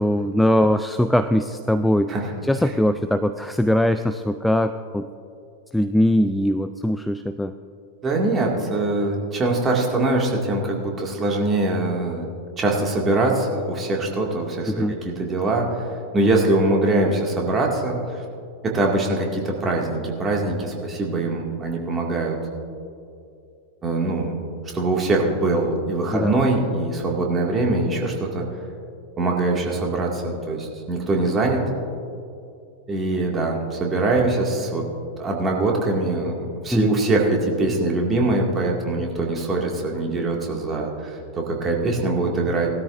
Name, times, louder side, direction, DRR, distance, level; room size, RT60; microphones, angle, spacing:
voice 1, 0.0-2.1 2.4-5.1 5.7-7.5 14.7-14.9 26.1-26.4 36.7-36.9, left 1 dB, 5° left, 10 dB, 0.4 m, -21 dB
voice 2, 8.0-12.3 12.6-15.9 16.1-18.2 18.6-22.4 23.8-24.4 24.7-28.5 29.2-31.6 32.9-34.9 35.2-42.7, right 2 dB, 20° right, -1 dB, 2.2 m, -23 dB
19.0 x 13.0 x 2.6 m, 2.5 s
figure-of-eight pair, 90°, 0 cm